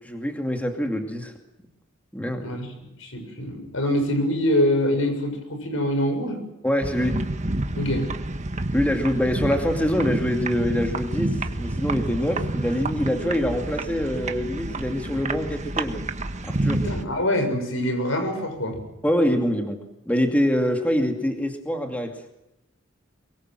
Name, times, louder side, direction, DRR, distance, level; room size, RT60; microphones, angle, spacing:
voice 1, 0.0-1.3 2.1-2.5 6.6-7.2 8.7-16.0 16.5-16.8 19.0-19.8 20.1-22.2, equal, 5° left, 4 dB, 2.5 m, -25 dB
voice 2, 3.0-6.4 7.8-8.1 16.8-18.8, left 1 dB, 80° left, 6 dB, 6.7 m, -24 dB
sound 1, 6.8-17.0, right 2 dB, 35° right, 1.4 m, -29 dB
23.5 x 23.0 x 7.7 m, 0.88 s
head